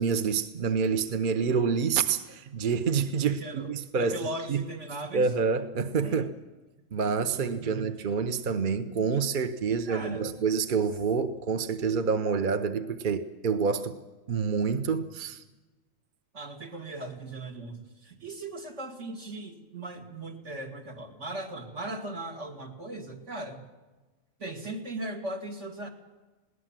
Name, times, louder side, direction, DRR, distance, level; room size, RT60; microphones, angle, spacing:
voice 1, 0.0-4.2 4.5-4.7 5.1-6.3 6.9-14.0 14.3-15.4, right 5 dB, 45° right, 0.9 m, -27 dB
voice 2, 3.3-5.3 6.0-6.2 7.3-7.9 9.1-9.2 9.7-10.3 16.3-23.6 24.4-25.9, right 2 dB, 65° right, 2.9 m, -38 dB
21.0 x 18.0 x 7.5 m
omnidirectional pair, 1.4 m